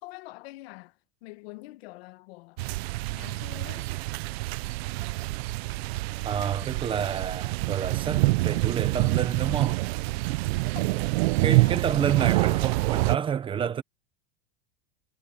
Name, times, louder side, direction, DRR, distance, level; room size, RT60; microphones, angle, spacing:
voice 1, 0.0-2.6 3.1-3.9 10.7-10.9 11.4-12.4, left 20 dB, 65° left, 1.2 m, -46 dB
sound 1, 2.6-13.2, right 22 dB, 70° right, 0.5 m, -26 dB
voice 2, 6.2-9.8 11.4-13.8, right 8 dB, 15° right, 0.7 m, -29 dB
supercardioid pair, 170°, 33 cm